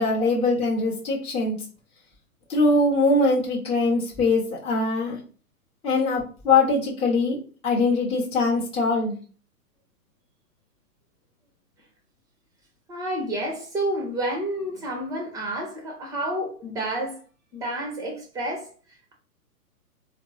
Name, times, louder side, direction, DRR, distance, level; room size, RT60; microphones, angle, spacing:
voice 1, 0.0-1.5 2.5-5.2 5.8-7.4 7.6-9.1, left 3 dB, 15° left, 0.9 m, -22 dB
voice 2, 12.9-17.2 17.5-18.7, right 1 dB, 10° right, 0.7 m, -29 dB
4.1 x 2.0 x 3.1 m
figure-of-eight pair, 120°, 45 cm